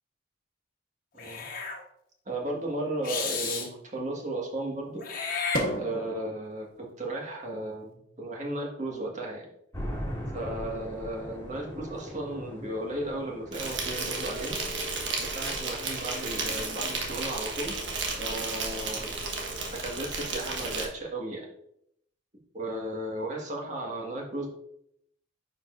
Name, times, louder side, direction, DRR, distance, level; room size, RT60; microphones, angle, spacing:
voice 1, 1.1-1.4 2.3-5.0 5.8-9.5 10.3-14.6 15.2-19.1 19.7-21.5 22.5-24.5, right 1 dB, 40° right, -1 dB, 1.8 m, -35 dB
Meow / Hiss, 1.2-1.8 3.0-3.7 5.0-6.2, left 3 dB, 50° left, 1.2 m, -31 dB
sound 1, 9.7-18.4, equal, 15° left, 2.1 m, -42 dB
Insect, 13.5-20.9, right 3 dB, 70° right, 1.4 m, -33 dB
9.7 x 5.0 x 2.6 m, 0.73 s
head